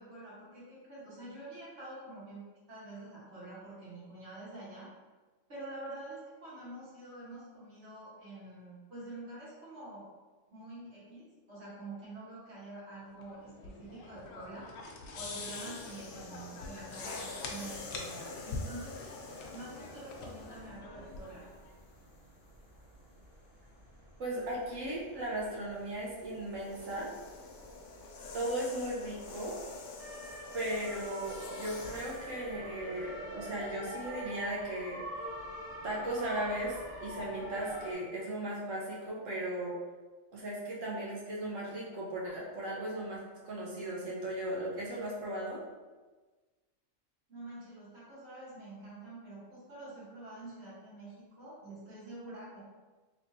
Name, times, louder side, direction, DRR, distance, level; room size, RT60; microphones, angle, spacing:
voice 1, 0.0-2.4 2.7-4.9 5.5-10.0 10.5-14.7 15.1-21.4 47.3-52.6, right 2 dB, 60° right, -9 dB, 1.5 m, -47 dB
sound 1, 13.2-21.7, left 3 dB, 90° left, 1.0 m, -45 dB
sound 2, 15.2-20.8 21.6-21.8 25.7-32.4, left 3 dB, 60° left, 0.5 m, -47 dB
sound 3, 20.4-37.9, equal, 35° right, 0.8 m, -47 dB
voice 2, 24.2-27.1 28.3-29.5 30.5-35.0 35.8-39.7 40.3-45.6, right 1 dB, 80° right, -5 dB, 1.3 m, -37 dB
3.2 x 3.0 x 2.7 m, 1.3 s
omnidirectional pair, 1.3 m